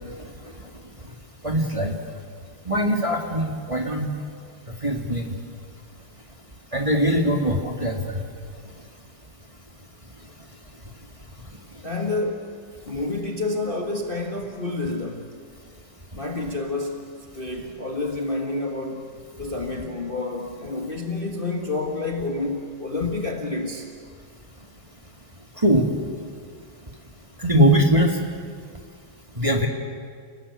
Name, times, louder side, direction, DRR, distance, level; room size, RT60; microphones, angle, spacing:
voice 1, 1.4-1.9 2.7-4.1 4.8-5.3 6.7-8.2 25.6-26.0 27.4-28.2 29.4-29.7, equal, 15° right, 1 dB, 2.0 m, -21 dB
voice 2, 11.8-12.5 12.9-15.3 16.1-17.1 17.3-19.1 19.4-23.9, left 3 dB, 25° left, 2 dB, 1.7 m, -29 dB
29.5 x 19.5 x 8.5 m, 2.1 s
omnidirectional pair, 2.4 m